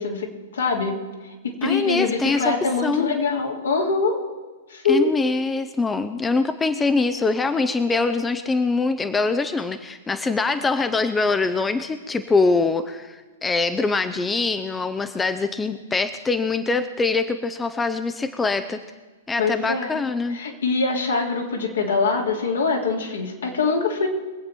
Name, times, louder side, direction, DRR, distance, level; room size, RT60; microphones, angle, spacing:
voice 1, 0.0-4.2 4.7-5.1 19.4-20.0 20.3-24.1, left 4 dB, 75° left, 0 dB, 2.7 m, -24 dB
voice 2, 1.6-2.5 2.8-3.1 4.9-18.8 19.3-20.4, left 3 dB, 15° left, 10 dB, 0.7 m, -23 dB
23.5 x 8.2 x 4.4 m, 1.3 s
figure-of-eight pair, 105°, 0 cm